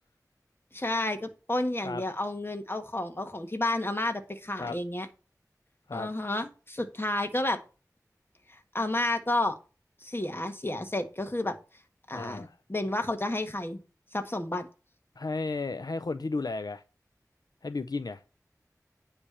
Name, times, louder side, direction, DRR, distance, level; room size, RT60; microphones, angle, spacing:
voice 1, 0.7-5.1 5.9-7.6 8.5-9.5 10.0-11.5 12.1-13.8 14.1-14.7, left 1 dB, 35° left, 1.6 m, -31 dB
voice 2, 12.1-12.5 15.2-16.8 17.6-18.2, left 3 dB, 80° left, 0.5 m, -33 dB
9.9 x 3.4 x 6.6 m
wide cardioid pair, 50°, 7 cm